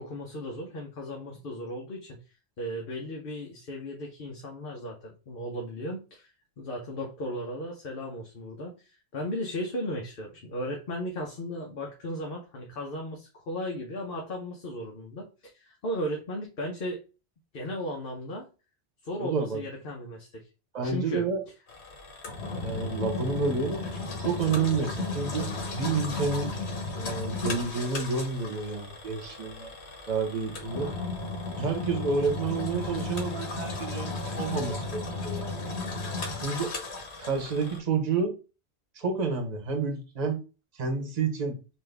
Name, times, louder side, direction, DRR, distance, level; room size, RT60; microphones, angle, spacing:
voice 1, 0.0-2.2 2.6-6.3 6.6-17.0 17.5-18.5 19.0-20.5 20.8-21.3, equal, 60° left, 1.0 m, -36 dB
voice 2, 19.2-19.6 20.7-21.4 22.6-23.8 24.2-25.5 25.7-26.5 27.0-29.7 30.1-30.9 31.6-35.5 36.4-36.7 37.2-38.3 38.9-40.4 40.7-41.6, right 4 dB, 40° right, 1.0 m, -29 dB
Engine, 21.7-37.8, left 3 dB, 85° left, 1.3 m, -35 dB
4.0 x 2.6 x 3.3 m
omnidirectional pair, 1.1 m